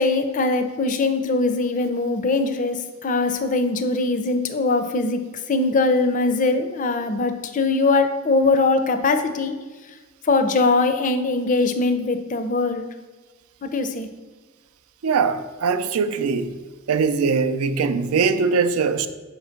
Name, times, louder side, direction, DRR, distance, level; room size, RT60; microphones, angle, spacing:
voice 1, 0.0-5.2 5.5-9.5 10.2-12.9 13.6-14.1, left 3 dB, 35° left, 0.4 m, -21 dB
voice 2, 15.0-16.6 16.9-19.1, right 5 dB, 85° right, 0.4 m, -21 dB
4.7 x 3.9 x 5.6 m
head